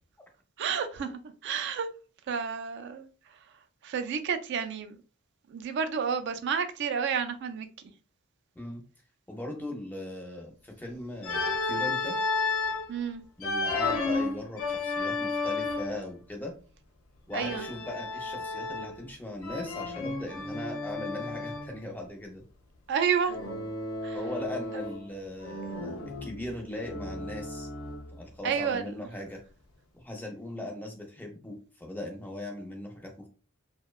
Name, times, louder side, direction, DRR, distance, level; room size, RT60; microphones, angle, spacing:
voice 1, 0.6-1.9 2.3-3.1 3.8-5.0 5.5-7.7 12.9-13.2 17.3-17.6 22.9-23.4 24.0-24.2 28.4-28.9, right 6 dB, 55° right, 0.3 m, -30 dB
voice 2, 9.3-12.2 13.4-16.5 17.3-22.4 24.1-27.7 28.2-29.4 29.9-33.3, left 1 dB, 10° left, 0.5 m, -39 dB
Organ, 11.2-12.9 13.4-16.1 17.3-19.1 19.4-21.7 23.3-25.1 25.4-28.1, left 3 dB, 70° left, 0.6 m, -32 dB
2.7 x 2.1 x 2.2 m
head